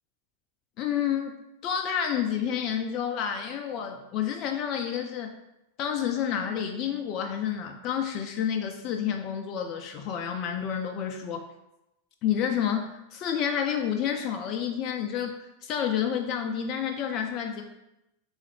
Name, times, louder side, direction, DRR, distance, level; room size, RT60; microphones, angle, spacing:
voice 1, 0.8-1.3 1.6-5.3 5.8-11.5 12.2-15.4 15.6-17.6, left 8 dB, 35° left, 4 dB, 0.3 m, -29 dB
3.6 x 3.1 x 3.3 m, 0.90 s
figure-of-eight pair, 90°, 0 cm